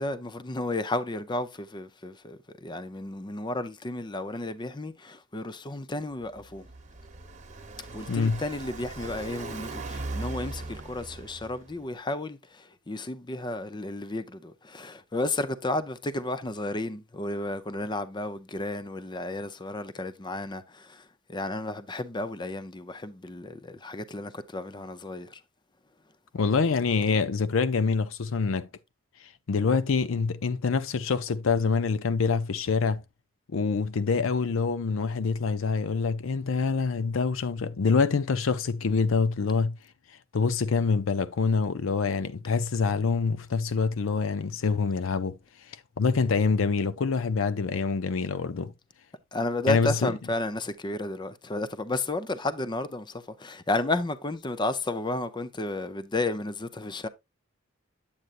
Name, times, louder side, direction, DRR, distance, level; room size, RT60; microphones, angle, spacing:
voice 1, 0.0-6.7 7.9-25.4 49.3-57.1, left 2 dB, 20° left, 0.6 m, -32 dB
Car passing by, 6.2-11.8, right 2 dB, 35° right, 1.1 m, -39 dB
voice 2, 8.1-8.4 26.3-28.7 29.5-33.0 33.5-39.8 40.3-45.4 46.0-48.7 49.7-50.1, left 5 dB, 70° left, 0.5 m, -26 dB
8.7 x 7.9 x 2.5 m
head